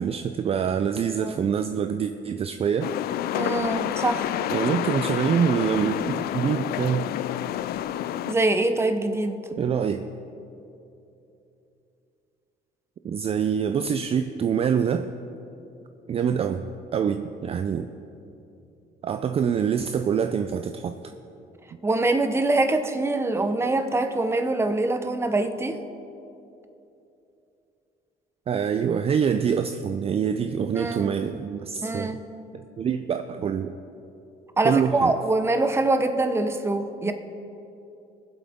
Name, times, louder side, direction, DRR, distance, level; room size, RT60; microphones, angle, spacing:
voice 1, 0.0-3.0 4.5-7.1 9.6-10.0 13.0-15.1 16.1-16.6 16.9-17.9 19.0-21.0 28.5-32.2 32.5-33.7 34.6-35.1, right 7 dB, 35° right, 8 dB, 0.4 m, -25 dB
sound 1, 2.8-8.3, left 12 dB, 65° left, 0.4 m, -28 dB
voice 2, 3.3-4.3 8.3-9.5 21.8-25.8 30.8-31.2 31.8-32.2 34.6-37.1, right 2 dB, 15° right, 8 dB, 0.8 m, -24 dB
20.0 x 7.8 x 3.6 m, 2.8 s
cardioid pair, 110°, 17 cm